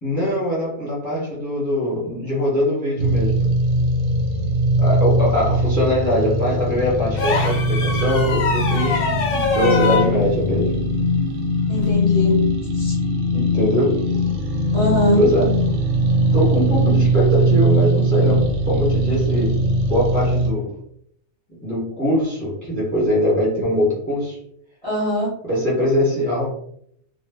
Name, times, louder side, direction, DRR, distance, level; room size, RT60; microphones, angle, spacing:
voice 1, 0.0-3.4 4.8-9.1 9.5-10.8 13.3-14.0 15.2-15.5 16.3-20.7 21.6-24.4 25.4-26.5, equal, 15° left, -5 dB, 0.7 m, -22 dB
sound 1, 3.0-20.5, equal, 75° right, 0.9 m, -20 dB
sound 2, 7.1-10.1 11.8-11.9, left 4 dB, 60° left, 0.6 m, -23 dB
voice 2, 11.7-12.9 14.7-15.2 24.8-25.3, equal, 30° right, -7 dB, 0.7 m, -22 dB
2.2 x 2.0 x 3.3 m, 0.69 s
omnidirectional pair, 1.4 m